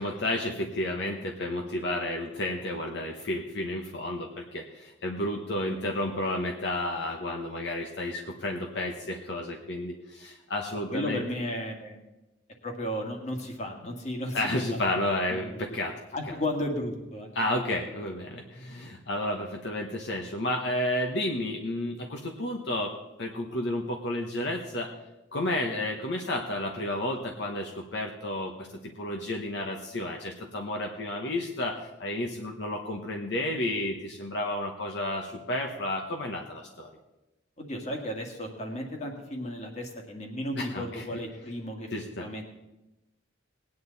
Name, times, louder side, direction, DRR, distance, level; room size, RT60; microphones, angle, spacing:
voice 1, 0.0-11.2 14.3-16.0 16.3-16.4 17.3-24.9 25.3-36.9 40.5-41.0 41.9-42.3, left 1 dB, 60° left, 2 dB, 1.1 m, -31 dB
voice 2, 10.9-12.0 12.6-14.8 15.3-15.5 16.1-17.6 37.6-41.9 42.2-42.5, left 1 dB, 35° left, 2 dB, 2.0 m, -34 dB
19.5 x 9.3 x 4.1 m, 1.0 s
head